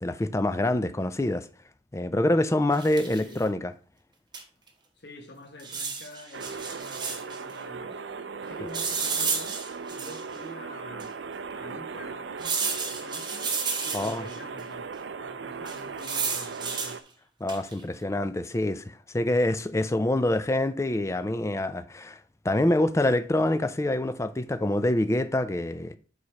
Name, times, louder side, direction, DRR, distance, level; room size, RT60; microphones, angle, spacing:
voice 1, 0.0-1.5 1.9-3.7 13.9-14.2 17.4-22.2 22.4-26.0, left 1 dB, 15° left, 0.4 m, -26 dB
sound 1, 2.7-3.3 4.3-4.4 4.7-4.8 5.6-7.4 8.7-10.4 11.0-11.1 12.4-14.4 15.7-17.0 17.5-17.8, right 5 dB, 25° right, 1.1 m, -32 dB
voice 2, 3.0-3.5 5.0-8.0 8.4-9.6 9.9-11.2 11.5-13.6 13.8-17.0, left 1 dB, 60° left, 1.5 m, -47 dB
sound 2, 6.3-17.0, right 5 dB, 70° right, 0.4 m, -38 dB
4.9 x 4.1 x 5.7 m
head